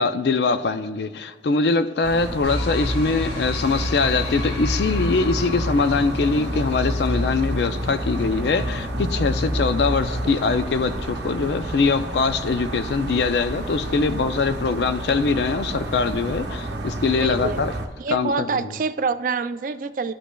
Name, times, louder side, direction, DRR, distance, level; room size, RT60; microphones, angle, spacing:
voice 1, 0.0-17.7 18.1-18.8, left 4 dB, 70° left, 0.4 m, -22 dB
sound 1, 2.0-17.9, right 2 dB, 75° right, 0.7 m, -31 dB
sound 2, 2.4-11.5, left 1 dB, 85° left, 1.9 m, -28 dB
voice 2, 17.2-17.6 18.0-20.1, right 4 dB, 45° right, 0.3 m, -26 dB
12.5 x 5.0 x 2.3 m
head